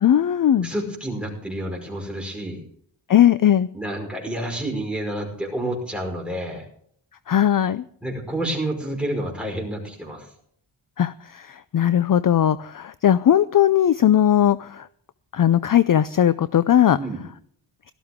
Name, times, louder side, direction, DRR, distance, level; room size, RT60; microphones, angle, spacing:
voice 1, 0.0-0.7 3.1-3.7 7.3-7.8 11.0-14.9 15.3-17.0, left 10 dB, 45° left, 15 dB, 0.5 m, -18 dB
voice 2, 0.6-2.6 3.7-6.6 8.0-10.3 16.9-17.2, right 1 dB, ahead, -1 dB, 5.1 m, -29 dB
17.0 x 13.5 x 3.6 m, 0.63 s
wide cardioid pair, 125°, 49 cm